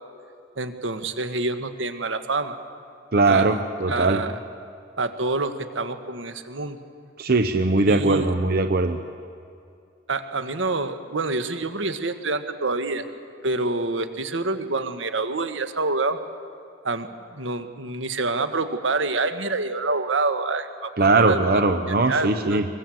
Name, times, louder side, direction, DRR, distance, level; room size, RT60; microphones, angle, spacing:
voice 1, 0.6-2.5 3.3-3.5 3.9-4.4 5.0-6.8 7.9-8.3 10.1-13.0 13.4-16.2 16.8-21.4 21.9-22.6, right 3 dB, 80° right, 8 dB, 1.5 m, -27 dB
voice 2, 3.1-4.2 7.2-9.0 21.0-22.6, right 3 dB, 50° right, 7 dB, 0.8 m, -20 dB
23.0 x 21.0 x 7.8 m, 2.5 s
head